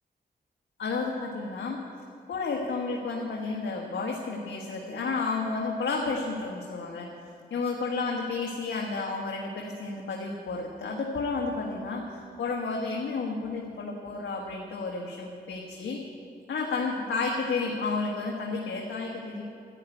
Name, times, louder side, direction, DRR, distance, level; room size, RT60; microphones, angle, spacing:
voice 1, 0.8-1.8 2.3-7.1 7.5-16.0 16.5-19.4, left 4 dB, 80° left, -1 dB, 1.5 m, -31 dB
11.5 x 10.5 x 9.1 m, 2.6 s
cardioid pair, 70°, 18 cm